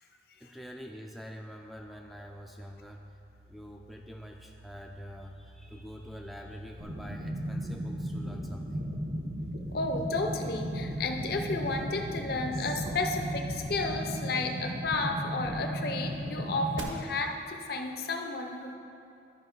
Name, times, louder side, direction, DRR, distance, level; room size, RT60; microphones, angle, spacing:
voice 1, 0.4-3.2 3.4-8.9, equal, ahead, 1 dB, 0.3 m, -46 dB
sound 1, 1.8-13.9, right 1 dB, 35° right, 0.7 m, -50 dB
sound 2, 6.8-16.8, equal, 80° right, 1.2 m, -36 dB
voice 2, 9.7-18.8, left 3 dB, 55° left, 4 dB, 0.6 m, -32 dB
13.0 x 5.1 x 3.9 m, 2.8 s
head